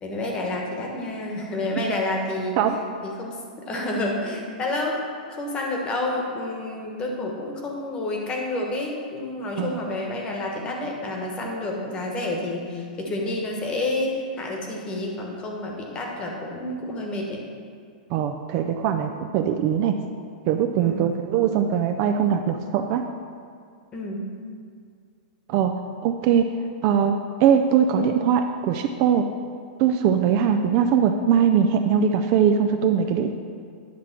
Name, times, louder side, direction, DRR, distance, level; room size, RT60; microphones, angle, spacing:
voice 1, 0.0-2.6 3.0-5.1 5.4-17.4 20.8-21.0 23.9-24.2, left 2 dB, 20° left, 0 dB, 1.1 m, -29 dB
voice 2, 18.1-20.0 20.5-23.0 25.5-25.7 26.0-26.5 26.8-29.3 29.8-33.3, right 8 dB, 35° right, 6 dB, 0.4 m, -21 dB
10.0 x 3.6 x 5.9 m, 2.2 s
hypercardioid pair, 155°, 5 cm